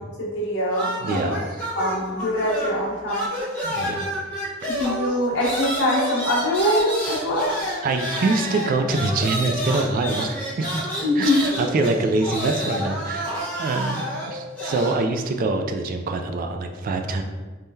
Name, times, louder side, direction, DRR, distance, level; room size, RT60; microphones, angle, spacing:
voice 1, 0.2-1.4 1.7-3.3 4.7-7.5 11.0-11.4, left 1 dB, 60° left, -5 dB, 1.1 m, -23 dB
sound 1, 0.7-2.8 3.1-15.0, equal, 10° left, 1.1 m, -29 dB
voice 2, 1.0-1.6 3.6-4.1 7.8-10.8 11.2-13.3 13.6-17.2, right 3 dB, 45° right, 5 dB, 0.3 m, -25 dB
3.6 x 3.2 x 2.7 m, 1.3 s
head